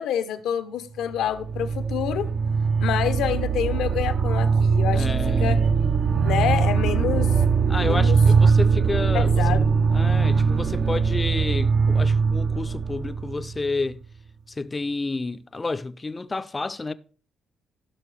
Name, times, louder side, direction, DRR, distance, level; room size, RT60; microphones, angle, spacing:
voice 1, 0.0-2.3 2.8-5.6 6.2-7.3 7.8-8.2 9.1-9.6, left 9 dB, 85° left, 0.9 m, -27 dB
sound 1, 1.1-13.9, right 5 dB, 55° right, 0.6 m, -21 dB
voice 2, 4.9-5.6 7.7-9.6 9.9-14.0 14.6-16.9, left 3 dB, 25° left, 0.5 m, -30 dB
15.5 x 6.1 x 3.3 m
cardioid pair, 90°, 0 cm